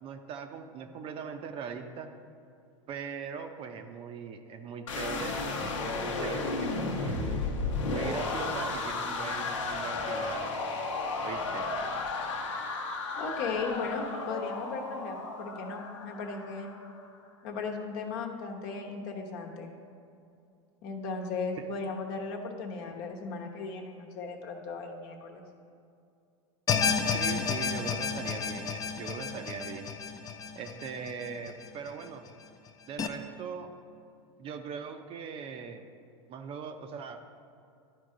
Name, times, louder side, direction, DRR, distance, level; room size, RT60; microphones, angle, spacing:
voice 1, 0.0-2.1 2.9-7.4 7.9-10.5 11.2-11.6 27.1-29.9 30.5-32.2 32.9-33.7 34.4-35.9 36.3-37.2, right 6 dB, 35° right, 7 dB, 0.5 m, -40 dB
sound 1, 4.9-16.9, left 3 dB, 90° left, 0.9 m, -33 dB
voice 2, 13.2-16.7 17.4-19.7 20.8-25.4, left 4 dB, 60° left, 2 dB, 1.0 m, -36 dB
sound 2, 26.7-31.9 32.3-32.4 33.0-33.1, left 6 dB, 25° left, 0.5 m, -31 dB
11.0 x 4.4 x 3.7 m, 2.5 s
supercardioid pair, 115°, 16 cm